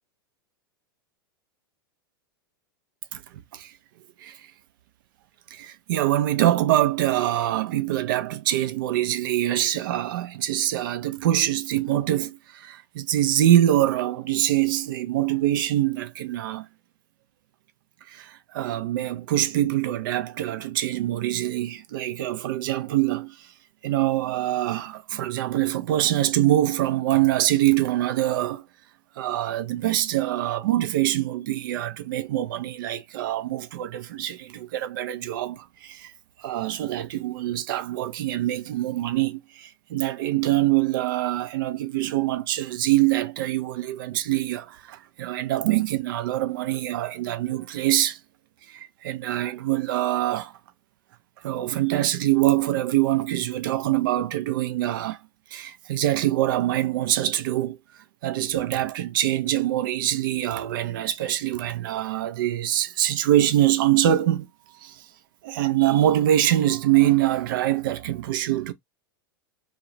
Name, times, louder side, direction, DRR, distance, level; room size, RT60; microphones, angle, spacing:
voice 1, 5.5-16.7 18.1-23.5 23.8-28.6 29.2-36.1 36.4-48.2 48.7-50.5 51.4-55.2 55.5-57.8 58.2-64.5 64.8-65.0 65.4-68.7, right 13 dB, 60° right, 0.5 m, -24 dB
2.3 x 2.0 x 2.9 m
hypercardioid pair, 100°, 12 cm